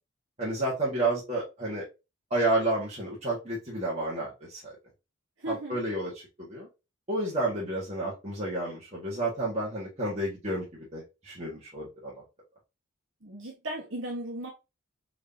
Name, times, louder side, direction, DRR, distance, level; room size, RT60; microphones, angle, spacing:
voice 1, 0.4-1.8 2.3-4.7 5.5-6.7 7.1-12.2, right 2 dB, 30° right, 1.4 m, -31 dB
voice 2, 5.4-5.8 13.2-14.5, right 1 dB, 65° right, 1.2 m, -36 dB
4.6 x 3.6 x 2.7 m
head